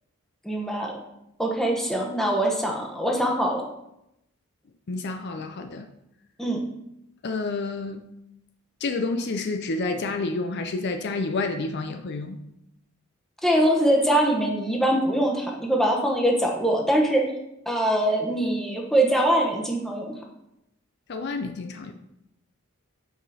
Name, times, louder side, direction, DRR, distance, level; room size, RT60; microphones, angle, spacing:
voice 1, 0.4-0.9 1.4-3.6 6.4-6.6 13.4-17.2 17.7-20.1, right 1 dB, ahead, -1 dB, 1.1 m, -23 dB
voice 2, 4.9-5.9 7.2-8.0 8.8-12.4 21.1-21.9, left 3 dB, 50° left, 7 dB, 0.5 m, -29 dB
7.9 x 4.9 x 4.1 m, 0.84 s
head